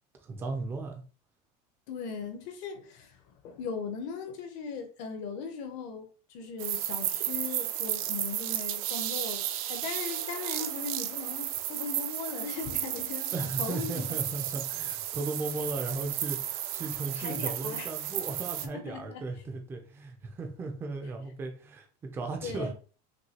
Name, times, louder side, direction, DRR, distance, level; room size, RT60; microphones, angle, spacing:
voice 1, 0.2-0.9 13.3-22.7, right 3 dB, 10° right, 0.4 m, -36 dB
voice 2, 1.9-14.0 17.2-17.9 18.6-19.3 22.4-22.7, left 5 dB, 35° left, 0.6 m, -39 dB
sound 1, 6.6-18.7, right 12 dB, 55° right, 0.5 m, -33 dB
6.0 x 2.7 x 2.8 m
supercardioid pair, 180°, 21 cm